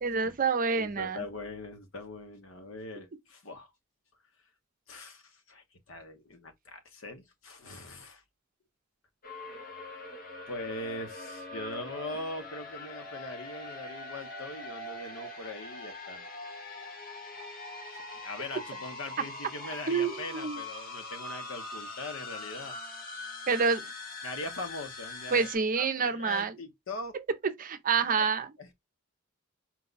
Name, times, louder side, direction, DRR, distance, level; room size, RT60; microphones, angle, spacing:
voice 1, 0.0-1.2 19.9-20.6 23.5-23.9 25.3-26.5 27.1-27.2 27.6-28.5, right 5 dB, 40° right, 0.6 m, -28 dB
voice 2, 0.7-3.7 4.9-8.2 10.5-16.3 17.9-22.8 24.2-25.5 25.8-27.2 28.2-28.3 28.6-28.7, left 2 dB, 70° left, 1.1 m, -41 dB
sound 1, 9.2-25.6, left 2 dB, 45° left, 0.8 m, -42 dB
4.5 x 2.3 x 3.9 m
head